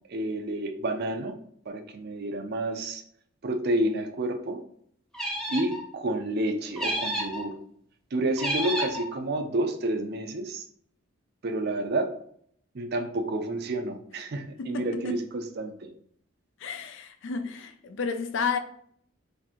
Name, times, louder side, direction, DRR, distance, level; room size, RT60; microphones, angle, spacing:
voice 1, 0.1-1.4 1.7-3.0 3.4-4.6 5.5-7.6 8.1-10.6 11.4-12.1 12.7-15.9, right 1 dB, 50° right, 0.5 m, -29 dB
sound 1, 5.1-5.8 6.8-7.4 8.4-9.0, equal, 5° left, 0.6 m, -30 dB
voice 2, 14.6-15.2 16.6-18.6, left 5 dB, 60° left, 0.4 m, -31 dB
4.1 x 2.6 x 2.9 m
head